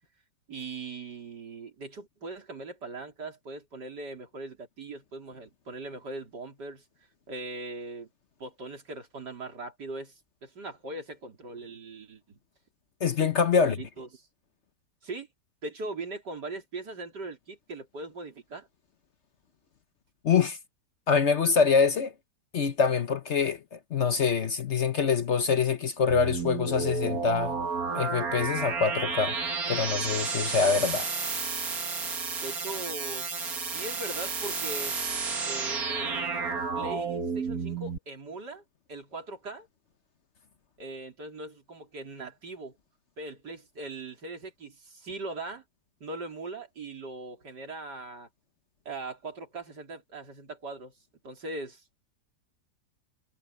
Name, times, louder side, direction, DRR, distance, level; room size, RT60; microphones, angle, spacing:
voice 1, 0.5-6.8 7.3-8.1 8.4-12.4 13.5-14.3 15.0-15.3 15.6-18.7 32.4-35.0 35.4-38.6 38.9-39.7 40.8-42.8 43.2-45.6 46.0-48.3 48.9-50.9 51.2-51.8, right 2 dB, 85° right, 4.2 m, -40 dB
voice 2, 13.0-13.8 20.2-20.6 21.1-22.1 22.5-27.6 27.9-29.4 29.7-31.1, left 6 dB, 50° left, 1.0 m, -25 dB
sound 1, 26.1-38.0, right 4 dB, 60° right, 2.6 m, -31 dB
omnidirectional pair, 1.8 m